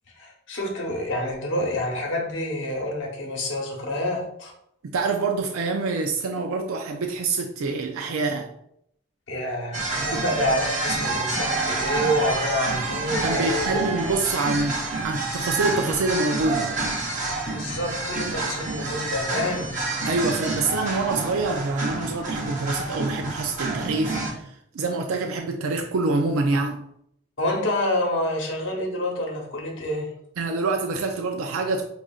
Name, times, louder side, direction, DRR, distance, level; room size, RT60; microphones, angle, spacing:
voice 1, 0.2-4.5 9.3-13.8 17.5-19.7 27.4-30.1, left 1 dB, 60° left, 0 dB, 1.0 m, -27 dB
voice 2, 4.8-8.5 10.0-10.2 13.2-16.7 20.1-26.8 30.4-31.8, right 3 dB, 85° right, 3 dB, 0.4 m, -26 dB
sound 1, 9.7-24.3, right 3 dB, 35° right, 0.9 m, -28 dB
6.2 x 2.4 x 2.4 m, 0.74 s
head